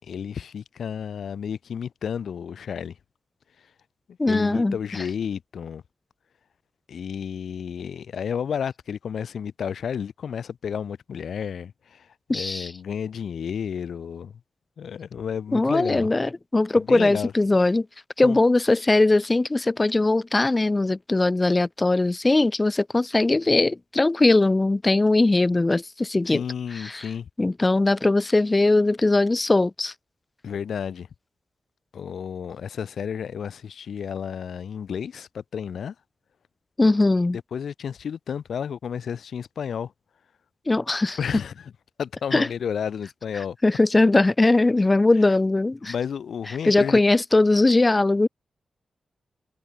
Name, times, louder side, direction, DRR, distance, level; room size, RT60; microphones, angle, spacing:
voice 1, 0.0-3.0 4.3-5.8 6.9-14.4 14.8-16.1 16.8-17.3 18.2-18.4 26.3-27.3 30.4-31.1 31.9-35.9 37.5-39.9 41.2-41.7 42.0-43.6 45.8-47.0, left 7 dB, 75° left, 5.4 m, -31 dB
voice 2, 4.2-5.0 12.3-12.7 15.5-17.9 18.2-26.4 26.7-27.1 27.4-29.9 36.8-37.4 40.7-41.2 42.3-42.5 43.6-45.9 46.6-48.3, left 2 dB, 20° left, 2.1 m, -20 dB
wide cardioid pair, 140°, 0 cm